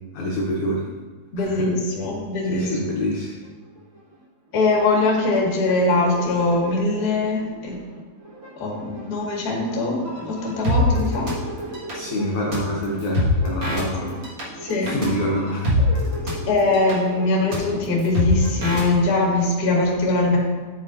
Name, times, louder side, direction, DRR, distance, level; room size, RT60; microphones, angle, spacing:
voice 1, 0.1-0.9 1.4-1.7 2.4-3.3 11.9-14.2 14.8-16.0, left 1 dB, 80° left, -4 dB, 1.7 m, -26 dB
voice 2, 1.3-2.8 4.5-7.7 8.6-10.0 10.2-11.3 14.0-14.1 14.6-14.9 16.4-20.4, left 2 dB, 45° left, -3 dB, 1.2 m, -22 dB
sound 1, 3.4-3.5 3.8-4.2 4.6-18.9, left 1 dB, 50° right, 1.4 m, -27 dB
9.5 x 8.9 x 2.7 m, 1.3 s
omnidirectional pair, 5.0 m